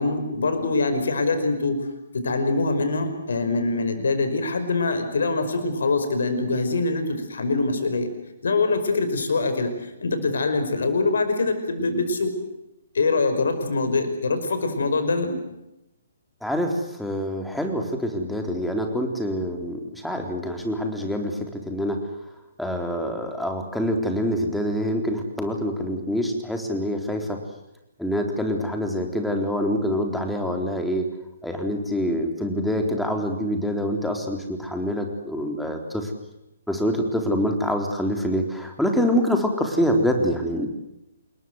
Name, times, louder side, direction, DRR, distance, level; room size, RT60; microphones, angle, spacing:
voice 1, 0.0-1.8 2.1-8.1 8.4-12.3 12.9-15.4, left 3 dB, 65° left, 8 dB, 5.3 m, -24 dB
voice 2, 16.4-22.0 22.6-27.4 28.0-31.1 31.4-36.1 36.7-40.7, equal, ahead, 3 dB, 3.9 m, -25 dB
27.5 x 21.5 x 8.1 m, 0.88 s
figure-of-eight pair, 130°, 0 cm